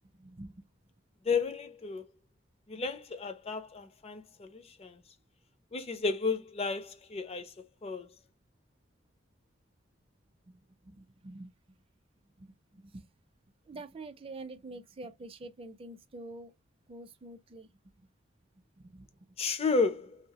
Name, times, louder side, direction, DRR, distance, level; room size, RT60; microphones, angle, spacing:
voice 1, 0.1-0.6 10.4-11.5 12.4-13.1 13.7-16.5 16.9-17.7 18.0-18.1 18.8-19.4, right 2 dB, 30° right, 0.4 m, -47 dB
voice 2, 1.3-2.0 2.7-5.0 5.7-7.5 7.8-8.1 19.4-20.2, left 4 dB, 30° left, 0.4 m, -32 dB
2.8 x 2.2 x 2.8 m
head